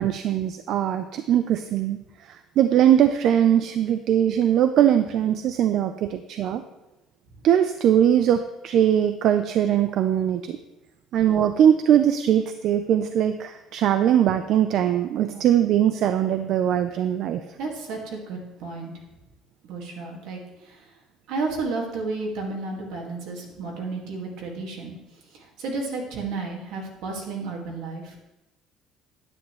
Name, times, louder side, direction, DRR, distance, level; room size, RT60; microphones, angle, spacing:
voice 1, 0.0-2.0 2.6-6.6 7.4-10.6 11.1-17.4, right 10 dB, 50° right, 9 dB, 0.4 m, -21 dB
voice 2, 17.6-18.9 19.6-20.9 21.3-25.0 25.3-28.2, right 3 dB, 65° right, 0 dB, 1.9 m, -32 dB
9.7 x 8.6 x 3.1 m, 0.99 s
cardioid pair, 180°, 0 cm